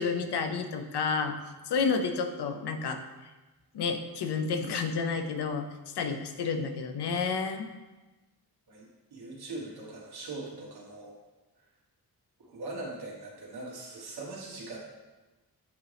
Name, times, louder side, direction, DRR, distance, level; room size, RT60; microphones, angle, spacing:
voice 1, 0.0-1.4 1.7-3.0 3.7-5.7 5.9-7.7, left 5 dB, 85° left, 7 dB, 0.7 m, -30 dB
voice 2, 8.7-11.2 12.4-14.8, right 2 dB, 70° right, -3 dB, 1.6 m, -41 dB
8.3 x 3.8 x 3.4 m, 1.1 s
wide cardioid pair, 180°, 39 cm